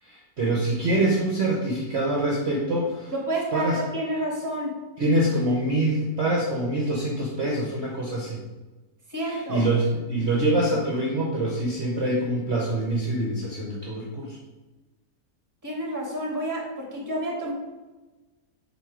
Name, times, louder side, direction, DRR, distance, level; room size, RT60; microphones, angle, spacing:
voice 1, 0.0-3.1 3.5-3.8 5.0-8.4 9.2-14.4, right 1 dB, 45° right, -3 dB, 1.2 m, -25 dB
voice 2, 3.3-4.7 9.1-9.7 15.6-17.5, right 1 dB, 10° right, -2 dB, 1.5 m, -29 dB
7.5 x 3.2 x 5.0 m, 1.2 s
omnidirectional pair, 1.8 m